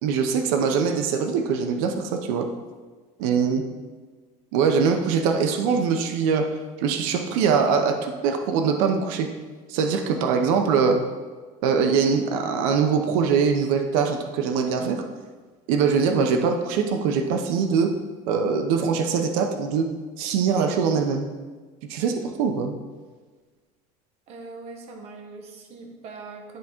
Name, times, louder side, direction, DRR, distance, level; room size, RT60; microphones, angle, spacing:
voice 1, 0.0-2.5 3.2-3.6 4.5-6.5 6.8-9.3 9.7-11.0 11.6-15.0 15.7-17.9 18.3-19.9 20.2-21.3 21.9-22.8, right 6 dB, 90° right, 5 dB, 0.7 m, -22 dB
voice 2, 24.3-26.6, right 3 dB, 40° right, 3 dB, 1.0 m, -41 dB
10.5 x 3.5 x 4.4 m, 1.4 s
cardioid pair, 170°, 17 cm